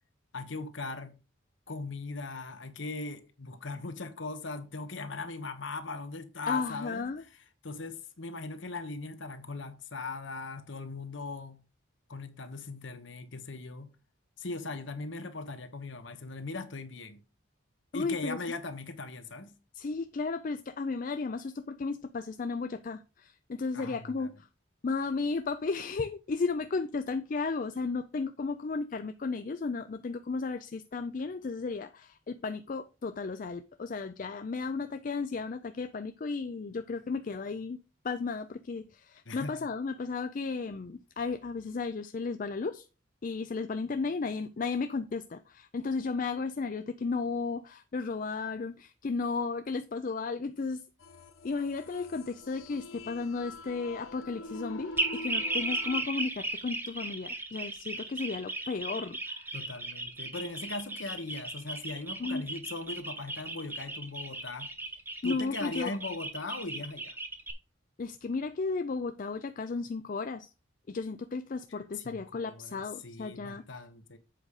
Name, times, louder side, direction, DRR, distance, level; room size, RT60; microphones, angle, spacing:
voice 1, 0.3-1.2 1.7-7.1 7.6-11.6 12.1-13.9 14.4-17.2 17.9-19.5 23.7-24.3 39.3-39.6 59.5-64.7 65.2-67.2 72.0-74.2, left 3 dB, 70° left, 1.1 m, -39 dB
voice 2, 6.5-7.2 17.9-18.4 19.7-24.5 24.8-37.8 38.0-42.9 43.2-50.8 51.4-59.5 62.2-62.5 65.2-66.0 68.0-70.5 70.9-73.6, left 4 dB, 40° left, 0.4 m, -34 dB
sound 1, 51.0-56.0, left 2 dB, 90° left, 1.0 m, -45 dB
sound 2, 55.0-67.5, right 2 dB, 10° right, 1.0 m, -36 dB
7.7 x 5.0 x 4.8 m
head